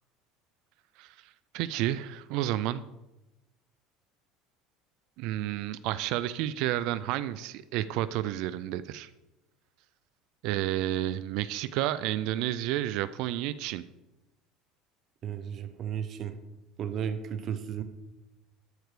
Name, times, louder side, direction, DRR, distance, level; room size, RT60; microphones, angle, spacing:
voice 1, 1.0-2.8 5.2-9.1 10.4-13.8, right 13 dB, 70° right, 15 dB, 0.4 m, -31 dB
voice 2, 15.2-16.3 16.8-17.8, right 8 dB, 50° right, 10 dB, 0.9 m, -34 dB
13.0 x 4.6 x 6.7 m, 0.99 s
supercardioid pair, 100°, 0 cm